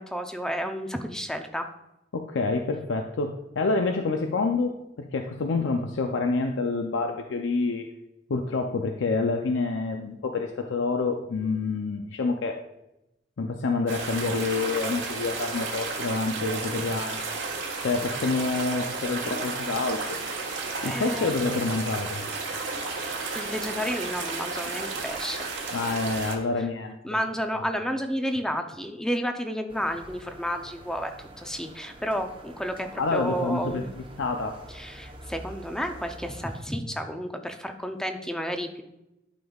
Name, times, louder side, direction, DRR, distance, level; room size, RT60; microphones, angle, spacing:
voice 1, 0.0-1.7 20.8-21.3 23.3-25.5 27.0-33.9 34.7-38.8, equal, 5° left, 6 dB, 0.5 m, -31 dB
voice 2, 2.1-4.7 5.1-7.9 8.3-12.6 13.4-17.2 17.8-20.2 20.8-22.3 25.7-27.0 33.0-33.8 34.2-34.6, left 3 dB, 80° left, 4 dB, 0.5 m, -27 dB
sound 1, 13.9-26.4, right 3 dB, 75° right, 1.3 m, -33 dB
sound 2, 29.7-36.6, right 1 dB, 25° right, 0.8 m, -46 dB
11.5 x 5.3 x 2.3 m, 0.90 s
head